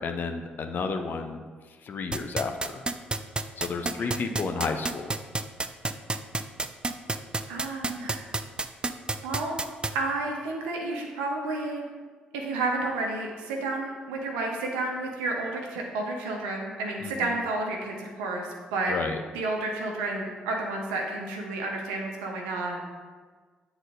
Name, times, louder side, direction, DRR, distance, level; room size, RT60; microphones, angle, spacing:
voice 1, 0.0-1.4 1.8-2.8 3.6-5.1 17.0-17.3 18.9-19.2, left 4 dB, 50° left, 6 dB, 0.6 m, -32 dB
sound 1, 2.1-9.9, right 3 dB, 20° right, 0.4 m, -28 dB
voice 2, 3.8-4.2 7.5-8.3 9.2-9.5 9.9-11.8 12.3-18.9 19.3-22.8, right 2 dB, 80° right, 0 dB, 0.9 m, -31 dB
9.1 x 4.0 x 2.6 m, 1.5 s
hypercardioid pair, 45°, 4 cm